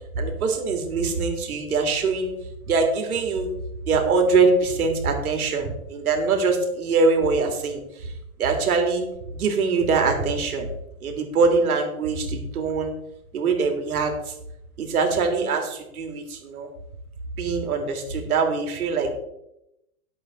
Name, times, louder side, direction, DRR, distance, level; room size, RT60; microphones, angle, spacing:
voice 1, 0.1-2.3 2.7-3.5 3.9-8.1 8.4-9.0 9.3-10.7 11.0-12.9 13.3-14.3 14.8-16.7 17.4-19.1, right 4 dB, 80° right, 3 dB, 3.2 m, -23 dB
11.5 x 8.2 x 4.7 m, 0.84 s
hypercardioid pair, 145°, 43 cm